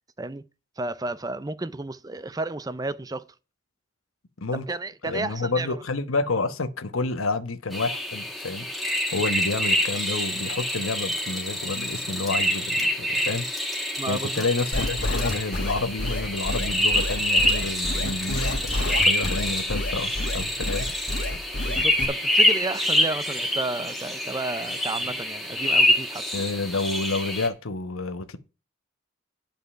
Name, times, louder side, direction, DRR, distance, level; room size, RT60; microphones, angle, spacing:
voice 1, 0.8-3.2 4.5-5.8 14.0-14.5 21.6-26.2, right 2 dB, 20° right, 0.4 m, -32 dB
voice 2, 5.0-20.9 26.3-28.4, left 3 dB, 90° left, 1.1 m, -29 dB
sound 1, 7.7-27.5, left 1 dB, ahead, 1.5 m, -26 dB
sound 2, 14.7-22.1, left 1 dB, 60° left, 1.8 m, -28 dB
10.0 x 5.3 x 5.6 m
head